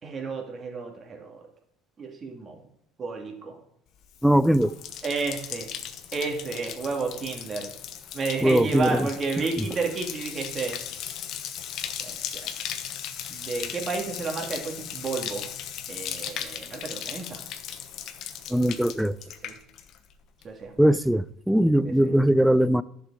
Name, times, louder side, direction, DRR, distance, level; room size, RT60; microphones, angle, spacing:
voice 1, 0.0-1.4 2.0-2.6 3.0-3.5 5.0-5.7 6.1-7.7 8.1-10.8 12.0-12.1 13.3-15.5 15.9-17.4 19.4-19.5 20.4-20.7 21.8-22.1, right 4 dB, 40° right, 2.6 m, -31 dB
Bathtub (filling or washing), 4.0-20.1 20.4-20.9, left 9 dB, 60° left, 0.9 m, -37 dB
voice 2, 4.2-4.7 8.4-9.1 18.5-19.1 20.8-22.8, equal, ahead, 0.5 m, -20 dB
11.0 x 6.6 x 4.9 m
hypercardioid pair, 70°, 0 cm